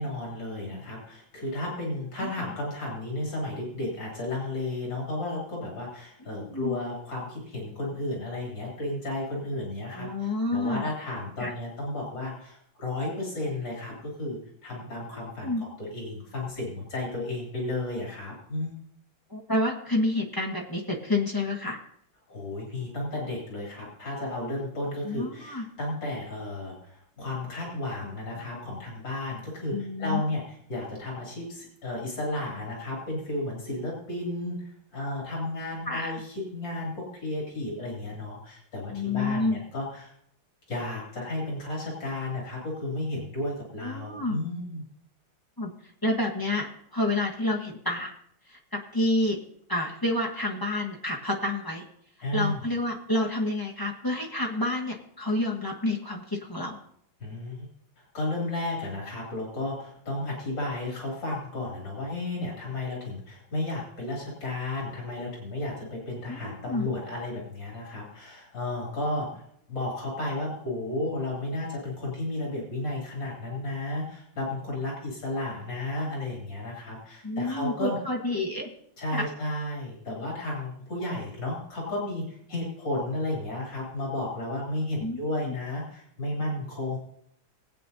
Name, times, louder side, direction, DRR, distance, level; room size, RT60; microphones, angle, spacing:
voice 1, 0.0-10.1 10.5-18.8 22.3-34.6 34.9-40.1 40.7-44.8 52.2-52.7 57.2-57.7 58.1-69.4 69.7-78.0 79.0-87.0, left 2 dB, 60° left, -3 dB, 3.4 m, -33 dB
voice 2, 6.2-6.8 9.9-10.9 11.4-11.5 15.1-15.6 19.3-21.8 25.0-25.6 28.0-28.1 29.7-30.2 35.9-36.2 38.9-39.6 43.8-44.4 45.6-45.7 46.0-48.1 48.5-49.4 49.7-51.8 52.3-56.8 66.3-66.9 77.2-78.7 79.1-79.3 85.0-85.5, left 2 dB, 15° left, 0 dB, 0.7 m, -29 dB
20.0 x 8.6 x 2.7 m, 0.69 s
omnidirectional pair, 2.3 m